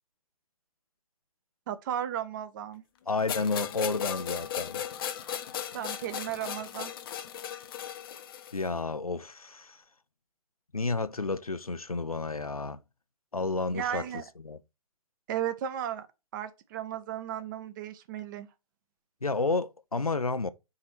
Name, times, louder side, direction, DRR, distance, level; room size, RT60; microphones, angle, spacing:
voice 1, 1.7-2.8 5.7-6.9 13.7-14.2 15.3-16.1 16.3-18.5, right 10 dB, 35° right, 0.7 m, -35 dB
voice 2, 3.1-4.8 8.5-9.8 10.7-12.8 13.3-14.1 14.4-14.6 19.2-20.5, left 3 dB, 90° left, 0.6 m, -31 dB
sound 1, 3.3-8.6, left 9 dB, 40° left, 0.7 m, -36 dB
4.9 x 4.2 x 5.8 m
figure-of-eight pair, 120°, 18 cm